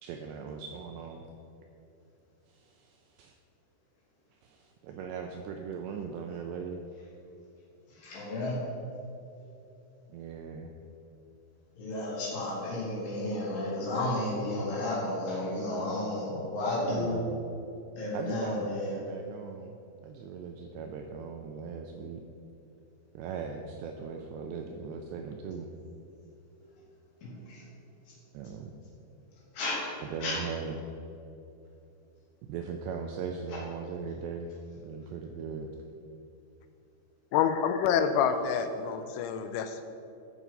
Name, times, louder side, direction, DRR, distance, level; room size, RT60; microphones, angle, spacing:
voice 1, 0.0-1.3 2.5-3.3 4.3-6.8 10.1-10.7 16.9-17.4 18.1-19.7 20.0-22.2 23.1-25.7 28.3-28.7 30.0-30.8 32.4-34.5 34.8-35.7, right 6 dB, 85° right, 4 dB, 2.5 m, -39 dB
voice 2, 7.9-8.6 11.8-17.2 17.9-18.9 27.2-27.7 29.5-29.9 30.2-30.4 33.5-33.6, left 1 dB, 50° left, -6 dB, 3.8 m, -32 dB
voice 3, 37.3-39.9, left 7 dB, 85° left, 8 dB, 3.1 m, -27 dB
14.0 x 6.1 x 5.3 m, 2.7 s
omnidirectional pair, 5.5 m